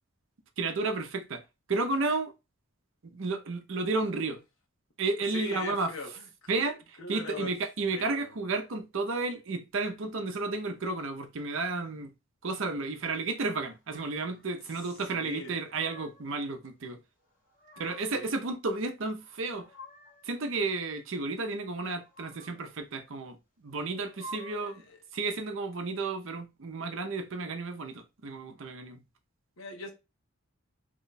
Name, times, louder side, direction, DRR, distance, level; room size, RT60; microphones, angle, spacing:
voice 1, 0.6-1.4 1.7-2.3 3.0-4.4 5.0-5.9 6.5-12.1 12.4-17.0 17.8-19.7 20.2-24.8 25.1-29.0, right 3 dB, 60° right, 0.6 m, -32 dB
voice 2, 5.3-6.7 7.0-7.5 7.9-8.3 15.1-15.7 18.1-18.3 24.5-25.0 29.6-29.9, left 2 dB, 65° left, 1.1 m, -41 dB
sound 1, 13.9-14.5 15.3-16.3 17.3-18.3 19.2-20.4 21.9-22.8 23.9-24.9, left 1 dB, 40° left, 1.1 m, -49 dB
3.0 x 2.2 x 3.9 m
head